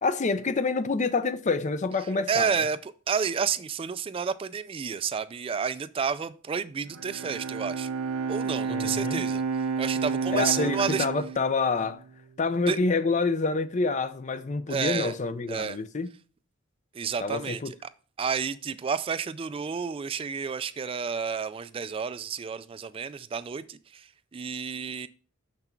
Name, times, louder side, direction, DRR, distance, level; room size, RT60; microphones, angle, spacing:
voice 1, 0.0-2.6 8.7-9.2 10.3-12.0 12.4-16.1 17.2-17.7, left 4 dB, 35° left, 0.5 m, -27 dB
voice 2, 2.3-7.9 8.3-9.4 9.8-11.1 12.7-12.8 14.7-15.1 15.5-15.8 16.9-17.9 18.2-24.1 24.3-25.1, right 6 dB, 25° right, 0.3 m, -30 dB
Bowed string instrument, 6.9-12.3, right 5 dB, 85° right, 0.6 m, -31 dB
6.7 x 6.0 x 4.4 m
head